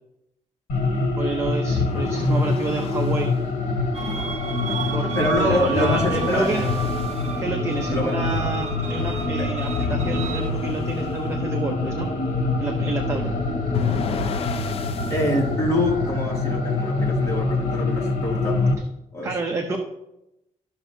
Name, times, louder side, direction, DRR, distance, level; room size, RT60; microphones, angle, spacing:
sound 1, 0.7-18.7, left 3 dB, 85° left, 2.0 m, -25 dB
voice 1, 1.2-3.3 4.9-6.7 7.4-12.1 12.6-13.3 19.2-19.8, right 3 dB, 20° right, 2 dB, 0.6 m, -29 dB
sound 2, 1.7-3.2 5.7-7.2 9.7-11.1 13.7-15.3, left 8 dB, 50° left, 0.5 m, -31 dB
sound 3, 3.9-10.5, right 7 dB, 55° right, 0.7 m, -33 dB
voice 2, 5.1-6.8 7.9-8.2 9.4-9.5 15.1-18.7 19.1-19.4, left 1 dB, 25° left, -4 dB, 2.3 m, -25 dB
13.5 x 5.9 x 2.7 m, 0.86 s
wide cardioid pair, 175°, 13 cm